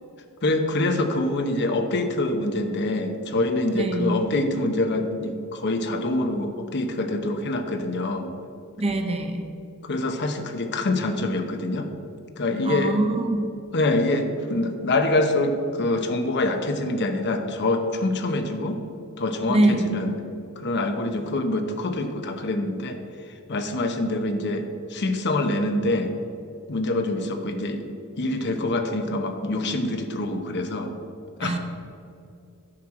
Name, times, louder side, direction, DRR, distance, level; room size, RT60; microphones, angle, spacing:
voice 1, 0.4-8.3 9.8-11.9 12.4-12.9 13.7-18.8 19.2-20.1 20.6-23.0 23.5-26.1 26.7-27.8 28.2-30.9 31.4-31.6, left 2 dB, 50° left, 6 dB, 0.9 m, -25 dB
voice 2, 3.7-4.3 8.8-9.5 12.6-13.4 19.5-20.0 31.4-31.6, right 2 dB, 30° right, 5 dB, 0.8 m, -23 dB
10.0 x 4.6 x 7.4 m, 2.6 s
head